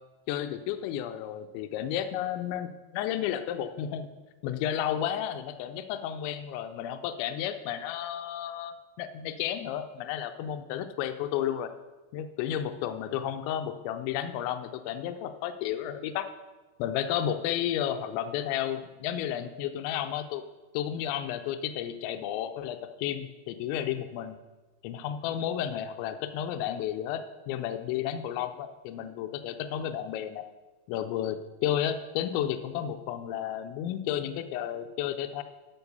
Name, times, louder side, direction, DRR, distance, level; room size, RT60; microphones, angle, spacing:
voice 1, 0.3-4.1 4.4-11.7 12.1-16.3 16.8-20.4 20.7-24.4 24.8-30.4 30.9-35.4, left 10 dB, 80° left, 8 dB, 2.9 m, -32 dB
11.5 x 6.6 x 5.4 m, 1.2 s
omnidirectional pair, 5.4 m